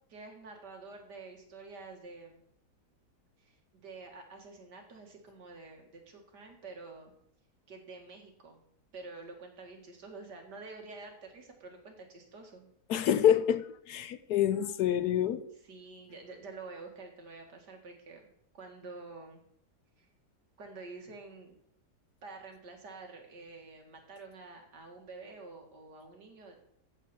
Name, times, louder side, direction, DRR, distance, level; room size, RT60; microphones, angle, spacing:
voice 1, 0.1-2.4 3.4-7.1 7.7-8.6 8.9-12.7 15.6-18.3 18.5-19.4 20.0-20.1 20.6-21.6 22.2-26.6, right 3 dB, 80° right, 2.6 m, -48 dB
voice 2, 12.9-15.4, left 10 dB, 75° left, 1.2 m, -27 dB
14.5 x 6.7 x 4.4 m
omnidirectional pair, 1.8 m